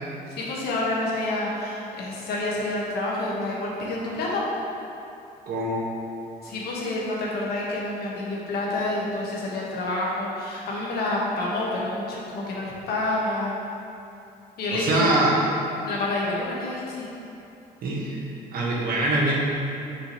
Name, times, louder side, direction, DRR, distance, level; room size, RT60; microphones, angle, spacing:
voice 1, 0.3-4.4 6.4-13.6 14.6-15.1 15.8-17.1, left 2 dB, 70° left, -4 dB, 1.5 m, -28 dB
voice 2, 5.5-5.8 14.7-15.3 17.8-18.2 18.5-19.3, right 2 dB, 60° right, -4 dB, 1.4 m, -23 dB
7.2 x 4.8 x 3.1 m, 2.8 s
cardioid pair, 110°, 17 cm